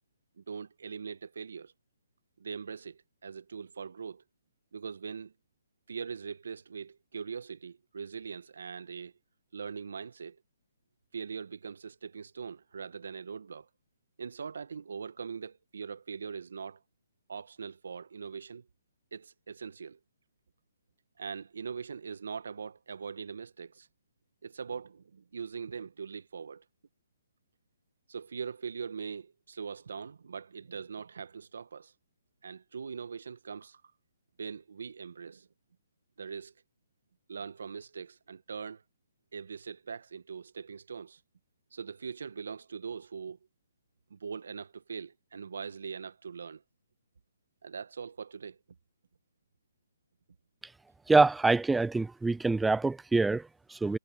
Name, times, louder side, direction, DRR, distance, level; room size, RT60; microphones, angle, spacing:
voice 1, 0.4-1.7 2.4-4.2 4.7-5.3 5.9-9.1 9.5-10.4 11.1-13.7 14.2-16.8 17.3-18.7 19.1-20.0 21.2-23.9 24.4-26.6 28.1-31.9 32.4-33.8 34.4-35.5 36.2-36.5 37.3-38.8 39.3-41.2 41.7-43.4 44.1-46.6 47.6-48.6, right 6 dB, 70° right, 1.5 m, -41 dB
voice 2, 51.1-54.0, right 3 dB, 5° right, 0.3 m, -25 dB
hypercardioid pair, 140°, 0 cm